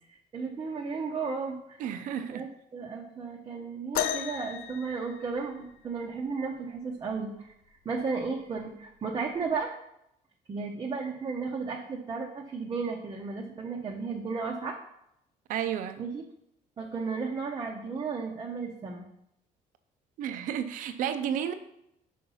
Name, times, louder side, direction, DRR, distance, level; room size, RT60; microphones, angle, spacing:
voice 1, 0.3-1.8 2.2-7.5 7.8-9.7 10.5-14.8 16.0-16.2 16.8-19.1, right 4 dB, 25° right, 0 dB, 0.7 m, -34 dB
voice 2, 1.8-2.4 15.5-16.0 20.2-21.5, right 9 dB, 65° right, 10 dB, 0.6 m, -32 dB
sound 1, 3.9-5.8 7.5-7.6 8.4-8.6 9.5-9.6, left 10 dB, 80° left, 0.6 m, -34 dB
5.5 x 5.1 x 5.5 m, 0.77 s
cardioid pair, 150°, 15 cm